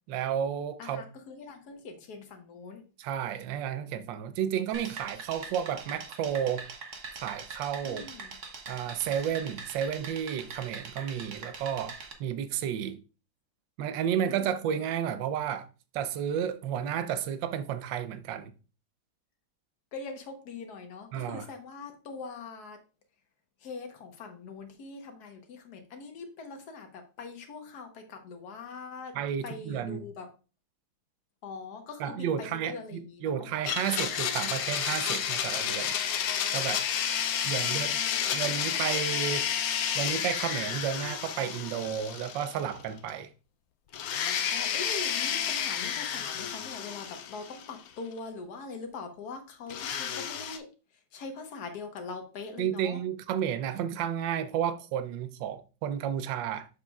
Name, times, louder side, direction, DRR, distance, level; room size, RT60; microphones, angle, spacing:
voice 1, 0.1-1.0 3.0-6.7 7.2-8.1 8.7-13.0 13.8-15.7 15.9-18.5 21.1-21.5 29.1-30.0 32.0-36.0 36.5-36.8 37.4-38.0 38.3-39.5 39.9-43.3 52.6-56.7, right 9 dB, 75° right, 1.3 m, -32 dB
voice 2, 0.8-2.8 7.8-8.4 14.2-14.6 19.9-22.8 23.6-29.2 29.4-30.3 31.4-33.5 37.6-38.8 44.5-50.7 51.1-53.0, left 4 dB, 55° left, 1.5 m, -42 dB
sound 1, 4.7-12.1, right 4 dB, 50° right, 1.0 m, -43 dB
Domestic sounds home sounds, 33.6-42.8 43.1-43.2 43.9-47.9 49.7-50.6, left 8 dB, 75° left, 0.8 m, -31 dB
6.9 x 6.7 x 2.3 m
omnidirectional pair, 2.2 m